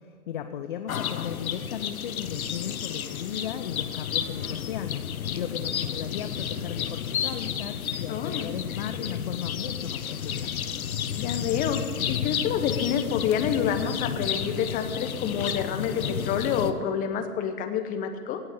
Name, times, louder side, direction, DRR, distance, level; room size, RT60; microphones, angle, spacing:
voice 1, 0.3-5.1 5.3-10.5, left 9 dB, 35° left, 9 dB, 0.5 m, -36 dB
sound 1, 0.9-16.7, left 8 dB, 65° left, 1.1 m, -32 dB
voice 2, 8.1-8.6 11.1-11.8 12.1-18.4, left 8 dB, 20° left, 7 dB, 1.0 m, -28 dB
17.5 x 6.2 x 9.1 m, 2.3 s
figure-of-eight pair, 125°, 45 cm